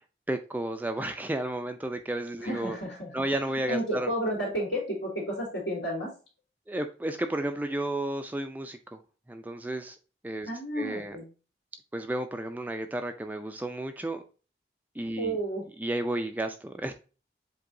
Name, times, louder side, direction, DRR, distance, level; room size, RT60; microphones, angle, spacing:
voice 1, 0.3-2.8 3.1-4.1 6.7-9.0 9.3-10.0 10.2-10.5 10.8-11.2 11.9-14.2 15.0-15.4 15.8-16.9, right 1 dB, 10° right, 0.3 m, -32 dB
voice 2, 2.4-3.2 3.7-6.1 10.5-11.3 15.1-15.6, right 1 dB, 80° left, 2.7 m, -32 dB
7.5 x 2.7 x 2.6 m
head